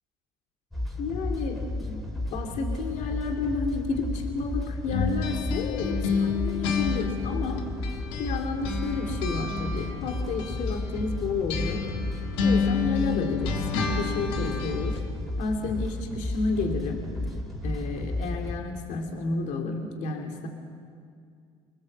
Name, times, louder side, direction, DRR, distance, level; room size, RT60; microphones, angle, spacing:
sound 1, 0.7-18.6, left 2 dB, ahead, 3.9 m, -33 dB
voice 1, 1.0-7.6 8.2-11.9 12.4-15.0 15.4-17.1 17.6-20.5, left 3 dB, 65° left, 2 dB, 2.8 m, -31 dB
sound 2, 4.9-8.4 8.6-15.0, left 5 dB, 80° left, 1.8 m, -30 dB
25.5 x 19.5 x 7.5 m, 2.3 s
supercardioid pair, 80°, 14 cm